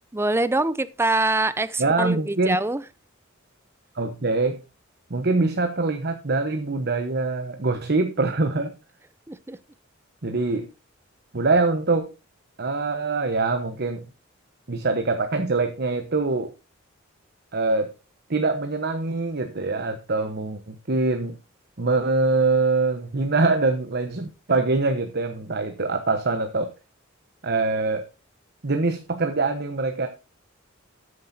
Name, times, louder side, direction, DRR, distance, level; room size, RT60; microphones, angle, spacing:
voice 1, 0.1-2.8 9.3-9.6, right 2 dB, 10° right, 0.6 m, -24 dB
voice 2, 1.8-2.6 3.9-4.6 5.1-8.7 10.2-10.7 11.3-12.1 12.6-14.1 14.7-16.5 17.5-17.9 18.3-21.4 21.8-26.7 27.4-28.1 28.6-30.1, right 3 dB, 55° right, 1.1 m, -24 dB
13.5 x 9.6 x 2.7 m
head